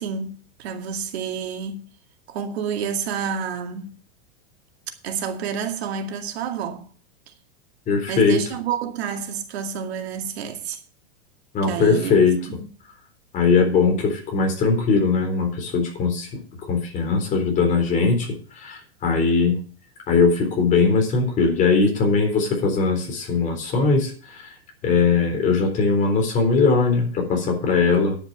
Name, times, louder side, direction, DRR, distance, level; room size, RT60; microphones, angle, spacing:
voice 1, 0.0-1.8 2.3-3.9 5.0-6.9 8.1-10.8 11.6-12.2 12.5-12.7, right 7 dB, 75° right, 2.3 m, -29 dB
voice 2, 7.9-8.4 11.5-12.4 13.3-19.6 20.1-24.5 24.8-28.2, left 4 dB, 25° left, 3.8 m, -20 dB
10.5 x 7.2 x 6.6 m
supercardioid pair, 160°, 32 cm